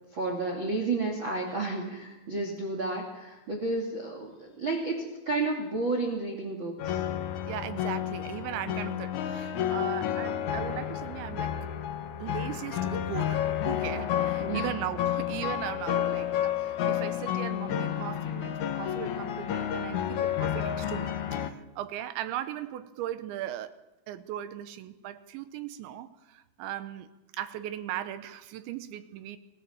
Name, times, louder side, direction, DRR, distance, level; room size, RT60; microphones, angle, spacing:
voice 1, 0.1-7.0 14.4-14.7, right 3 dB, 35° right, 2 dB, 2.4 m, -31 dB
sound 1, 6.8-21.5, left 10 dB, 80° left, 1.7 m, -31 dB
voice 2, 7.5-11.6 12.2-23.7 24.1-29.4, right 11 dB, 85° right, 12 dB, 3.3 m, -38 dB
27.5 x 17.0 x 7.2 m, 1.0 s
omnidirectional pair, 5.2 m